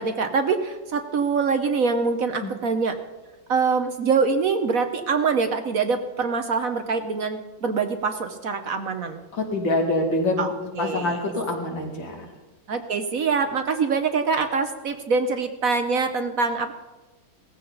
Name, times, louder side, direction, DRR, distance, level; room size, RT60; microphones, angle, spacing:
voice 1, 0.0-3.0 3.5-9.2 10.4-11.2 12.7-16.7, right 5 dB, 55° right, 7 dB, 1.1 m, -24 dB
voice 2, 9.3-10.5 10.8-12.2, left 2 dB, 80° left, 1 dB, 3.1 m, -25 dB
18.0 x 14.5 x 4.0 m, 1.2 s
omnidirectional pair, 2.0 m